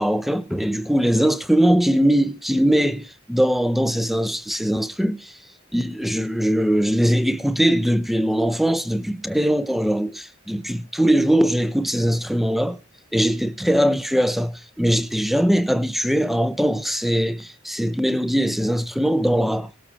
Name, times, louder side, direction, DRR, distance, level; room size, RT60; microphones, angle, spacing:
voice 1, 0.0-5.4 5.7-12.8 13.1-19.7, equal, ahead, 0.6 m, -21 dB
18.5 x 7.6 x 4.4 m
head